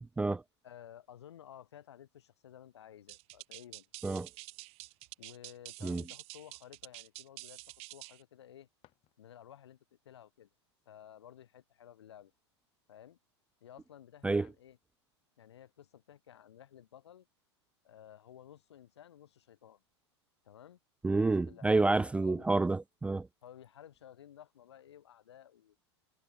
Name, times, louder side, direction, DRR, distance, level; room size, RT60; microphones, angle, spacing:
voice 1, 0.6-4.2 5.2-8.7 9.2-10.5 10.9-12.3 12.9-13.2 13.6-14.8 15.4-17.3 17.8-19.8 20.4-20.8 21.1-21.7 22.2-22.5 23.4-25.8, left 10 dB, 70° left, 3.9 m, -54 dB
sound 1, 3.1-8.2, right 23 dB, 45° right, 1.9 m, -48 dB
sound 2, 8.7-9.8, left 18 dB, 40° left, 7.8 m, -70 dB
voice 2, 21.0-23.3, right 3 dB, 10° right, 0.5 m, -29 dB
figure-of-eight pair, 90°, 15 cm